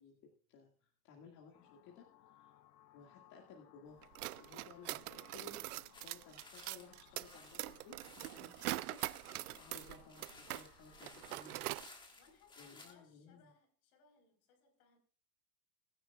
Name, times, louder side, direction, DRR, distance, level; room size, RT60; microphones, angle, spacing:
voice 1, 0.0-2.6 2.9-4.1 4.4-11.7 12.6-13.5, left 4 dB, 35° left, 0 dB, 2.2 m, -58 dB
sound 1, 1.5-11.7, left 12 dB, 85° left, 1.0 m, -65 dB
sound 2, 4.0-10.7 10.9-11.9, right 17 dB, 65° right, 0.6 m, -43 dB
sound 3, 5.9-12.9, left 3 dB, 10° left, 1.5 m, -59 dB
voice 2, 12.1-15.0, left 5 dB, 55° left, 4 dB, 4.8 m, -68 dB
20.5 x 9.8 x 2.4 m, 0.42 s
hypercardioid pair, 135°, 50 cm